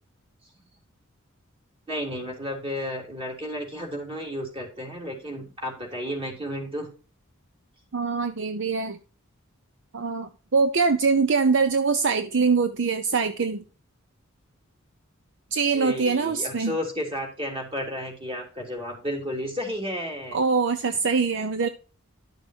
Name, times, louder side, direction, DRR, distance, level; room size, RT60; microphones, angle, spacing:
voice 1, 1.9-6.9 15.7-20.4, equal, 25° right, 0 dB, 3.2 m, -32 dB
voice 2, 7.9-9.0 9.9-13.6 15.5-16.7 20.3-21.7, right 4 dB, 60° right, 9 dB, 0.7 m, -23 dB
12.0 x 6.6 x 2.8 m, 0.34 s
head